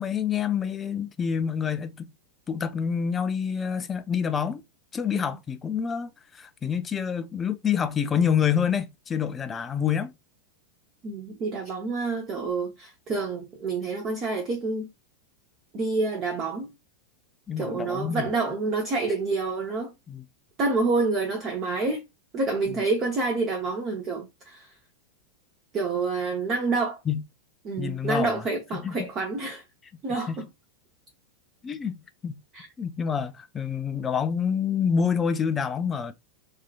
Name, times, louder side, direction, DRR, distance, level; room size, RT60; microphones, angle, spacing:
voice 1, 0.0-2.1 2.5-4.6 4.9-10.1 17.5-18.3 20.1-20.2 22.7-22.8 27.1-27.2 27.8-28.4 28.7-29.1 30.3-30.4 31.6-32.4 32.8-36.1, left 7 dB, 20° left, 0.4 m, -27 dB
voice 2, 11.0-14.9 15.7-16.7 17.6-19.9 20.6-22.0 22.3-24.7 25.7-27.0 27.6-29.6 30.0-30.4 32.5-32.7, right 3 dB, 30° right, 0.7 m, -28 dB
2.7 x 2.4 x 2.3 m
figure-of-eight pair, 90°, 0 cm